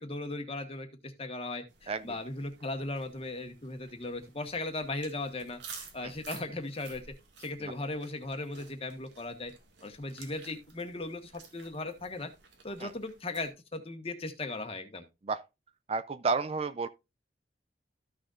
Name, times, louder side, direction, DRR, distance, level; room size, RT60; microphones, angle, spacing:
voice 1, 0.0-7.0 7.4-9.5 9.8-12.3 12.6-15.0, left 2 dB, 35° left, 1.4 m, -37 dB
sound 1, 1.7-13.5, right 5 dB, 90° right, 1.9 m, -53 dB
voice 2, 1.9-2.2 6.0-6.1 12.8-12.9 15.2-15.4 15.9-16.9, right 4 dB, 35° right, 0.4 m, -31 dB
14.0 x 6.4 x 2.5 m
head